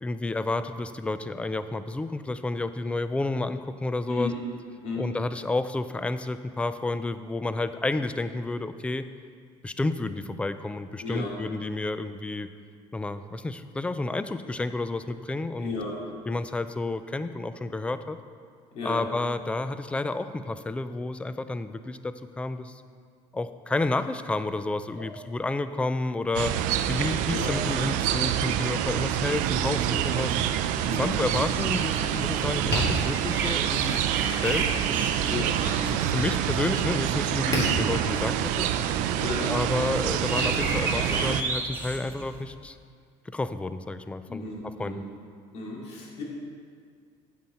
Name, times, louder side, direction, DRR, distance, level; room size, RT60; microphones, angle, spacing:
voice 1, 0.0-4.3 5.0-9.1 9.6-12.5 12.9-15.7 16.3-18.2 18.8-22.8 23.3-26.5 26.9-30.4 31.0-35.1 35.9-38.7 39.5-42.8 43.3-44.5 44.8-45.0, left 2 dB, 10° left, 11 dB, 0.3 m, -30 dB
voice 2, 11.0-11.3 15.6-15.9 18.7-19.1 27.3-27.5 30.8-31.1 35.3-35.5 39.2-39.6 44.3-45.0 45.5-46.2, left 3 dB, 60° left, -3 dB, 2.4 m, -34 dB
sound 1, 26.3-41.4, right 10 dB, 80° right, 0.5 m, -27 dB
Tap, 30.9-40.6, left 1 dB, 30° left, 2.5 m, -37 dB
sound 2, 31.4-42.4, right 2 dB, 15° right, 1.0 m, -36 dB
9.3 x 7.8 x 4.3 m, 2.1 s
cardioid pair, 145°, 13 cm